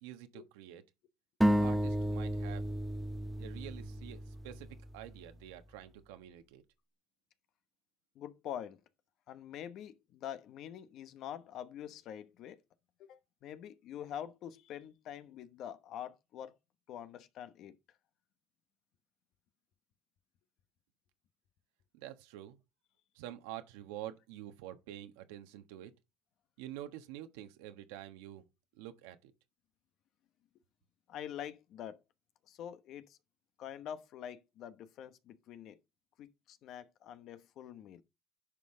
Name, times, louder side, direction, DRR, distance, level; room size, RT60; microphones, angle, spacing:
voice 1, 0.0-0.8 1.5-2.7 3.4-6.6 21.9-22.6 23.1-25.9 26.6-28.5 28.8-29.3, right 12 dB, 85° right, 1.2 m, -47 dB
sound 1, 1.4-5.0, equal, 5° right, 0.7 m, -32 dB
voice 2, 8.1-8.8 9.3-12.6 13.1-16.5 16.9-17.8 31.1-32.0 32.5-33.2 33.6-35.8 36.2-38.0, left 10 dB, 55° left, 1.0 m, -45 dB
10.0 x 5.4 x 3.8 m
supercardioid pair, 105°, 0 cm